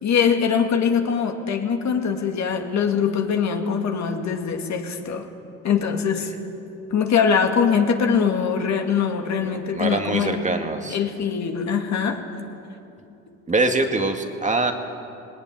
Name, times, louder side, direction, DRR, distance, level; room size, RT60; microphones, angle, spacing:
voice 1, 0.0-5.3 5.6-6.3 6.9-10.5 10.9-12.2, left 6 dB, 55° left, 4 dB, 2.4 m, -22 dB
voice 2, 9.4-11.0 13.5-14.7, right 2 dB, 20° right, 4 dB, 2.0 m, -24 dB
19.0 x 18.5 x 9.5 m, 2.7 s
cardioid pair, 95°, 33 cm